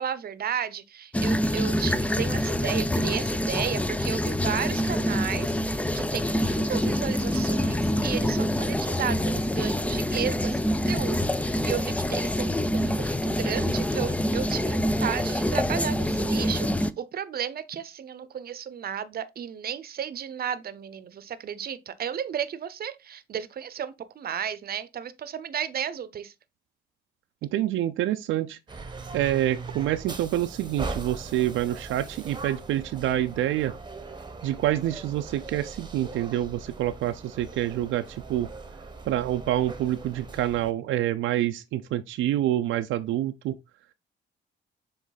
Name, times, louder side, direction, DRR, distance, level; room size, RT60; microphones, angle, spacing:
voice 1, 0.0-26.3, right 8 dB, 50° right, 0.8 m, -33 dB
sound 1, 1.1-16.9, left 1 dB, 5° left, 0.4 m, -26 dB
voice 2, 27.4-28.6 29.1-33.8 34.4-38.5 39.1-43.5, right 13 dB, 85° right, 0.5 m, -27 dB
sound 2, 28.7-40.7, right 3 dB, 20° right, 1.0 m, -40 dB
7.3 x 3.3 x 4.0 m
cardioid pair, 90°, 20 cm